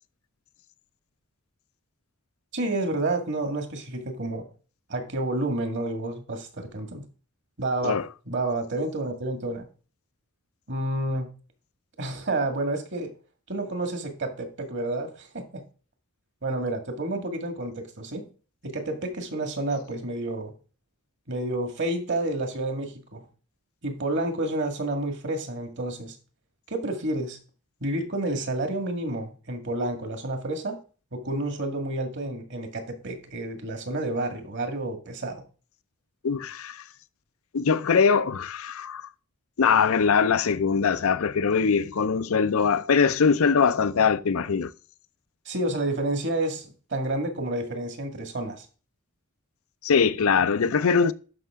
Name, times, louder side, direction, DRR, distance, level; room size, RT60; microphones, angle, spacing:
voice 1, 2.5-4.5 4.9-7.0 7.6-8.0 8.3-9.6 10.7-11.3 12.0-13.1 13.5-15.6 16.4-18.2 18.6-20.5 21.3-23.2 23.8-26.2 26.7-27.4 27.8-30.8 31.1-35.4 45.5-48.7, right 2 dB, 55° right, 2.0 m, -30 dB
voice 2, 36.2-36.8 37.5-39.0 39.6-44.7 49.8-51.1, left 6 dB, 65° left, 0.5 m, -22 dB
11.0 x 5.5 x 3.6 m
head